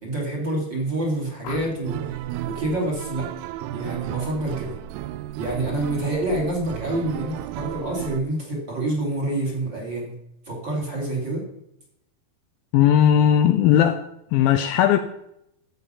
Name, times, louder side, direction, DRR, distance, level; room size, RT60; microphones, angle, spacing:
voice 1, 0.0-3.3 3.7-4.8 5.4-10.1 10.5-11.4, right 2 dB, 30° right, -1 dB, 2.8 m, -27 dB
sound 1, 1.4-2.0 3.8-4.1 4.5-4.8, left 5 dB, 65° left, 2.7 m, -40 dB
sound 2, 1.8-8.2, right 13 dB, 85° right, 2.5 m, -33 dB
voice 2, 12.7-14.0 14.3-15.0, left 10 dB, 90° left, 9 dB, 2.1 m, -17 dB
13.5 x 7.6 x 5.5 m, 0.81 s
omnidirectional pair, 4.8 m